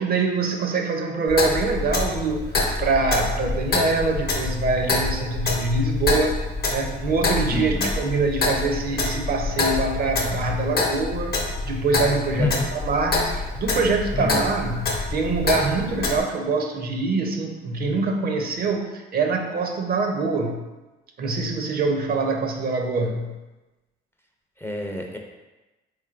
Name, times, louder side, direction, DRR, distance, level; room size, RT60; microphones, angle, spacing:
voice 1, 0.0-6.4 6.7-20.6 21.2-23.4, right 3 dB, 50° right, 3 dB, 0.5 m, -24 dB
Clock, 1.3-16.2, left 3 dB, 55° left, 0.8 m, -26 dB
voice 2, 7.5-7.9 12.4-12.7 14.1-14.4 24.6-25.2, left 3 dB, 10° left, 1 dB, 0.4 m, -27 dB
3.6 x 3.2 x 2.4 m, 1.1 s
cardioid pair, 90°, 20 cm